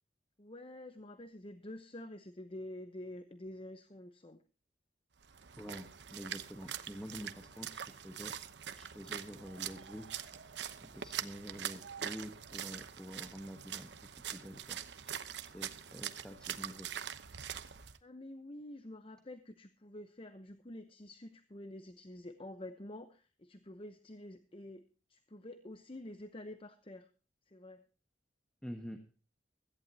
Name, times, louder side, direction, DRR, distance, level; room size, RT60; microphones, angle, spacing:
voice 1, 0.4-4.4 18.0-24.8 25.1-27.1 27.5-27.8, left 1 dB, 30° left, 9 dB, 0.9 m, -48 dB
Splash splatter, 5.2-18.0, right 9 dB, 70° right, 0.9 m, -44 dB
voice 2, 5.5-10.2 10.8-15.1 15.5-16.9 28.6-29.0, equal, 5° left, 4 dB, 1.3 m, -48 dB
sound 1, 9.0-13.9, right 6 dB, 90° right, 1.3 m, -57 dB
17.0 x 14.5 x 2.8 m, 0.36 s
head